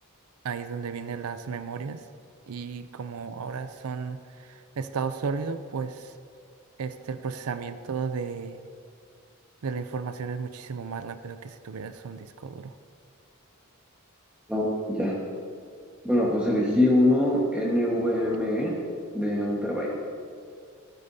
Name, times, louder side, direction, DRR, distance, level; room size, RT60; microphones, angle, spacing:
voice 1, 0.4-2.0 2.5-6.1 6.8-8.6 9.6-12.7, right 5 dB, 90° right, 11 dB, 0.5 m, -34 dB
voice 2, 14.5-15.1 16.0-18.7 19.1-19.9, left 1 dB, 5° right, -5 dB, 1.4 m, -24 dB
14.0 x 14.0 x 2.8 m, 2.3 s
head